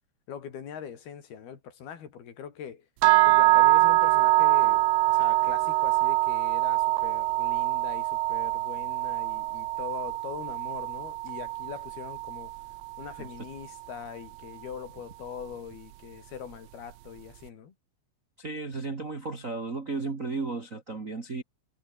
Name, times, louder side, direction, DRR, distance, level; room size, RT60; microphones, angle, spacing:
voice 1, 0.3-2.9 3.2-12.5 13.0-17.7, left 8 dB, 80° left, 5.1 m, -42 dB
sound 1, 3.0-13.1, right 17 dB, 80° right, 2.7 m, -24 dB
voice 2, 18.4-21.4, right 3 dB, 35° right, 1.4 m, -34 dB
omnidirectional pair, 4.4 m